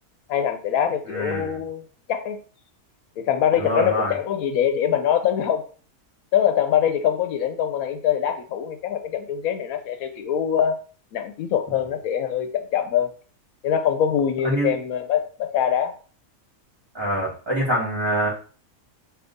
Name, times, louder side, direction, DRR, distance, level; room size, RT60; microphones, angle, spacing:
voice 1, 0.3-1.8 2.1-2.4 3.2-5.6 6.3-10.8 11.1-13.1 13.6-15.9, left 9 dB, 75° left, 8 dB, 1.0 m, -23 dB
voice 2, 1.1-1.6 3.6-4.1 14.4-14.7 16.9-18.3, right 1 dB, 20° right, -5 dB, 1.5 m, -25 dB
3.5 x 2.9 x 3.8 m, 0.40 s
omnidirectional pair, 1.5 m